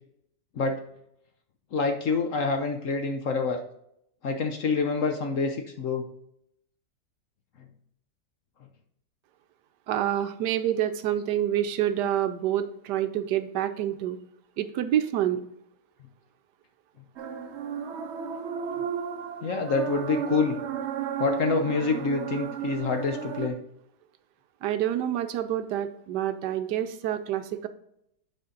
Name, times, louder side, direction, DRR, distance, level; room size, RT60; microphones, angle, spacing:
voice 1, 1.7-3.6 4.2-6.0 19.4-20.6 21.2-23.6, left 4 dB, 60° left, 4 dB, 0.9 m, -26 dB
voice 2, 9.9-14.2 14.6-15.4 24.6-27.7, right 11 dB, 75° right, 10 dB, 1.2 m, -27 dB
sound 1, 17.2-23.5, right 8 dB, 60° right, 0.7 m, -34 dB
8.3 x 4.3 x 3.8 m, 0.75 s
omnidirectional pair, 1.9 m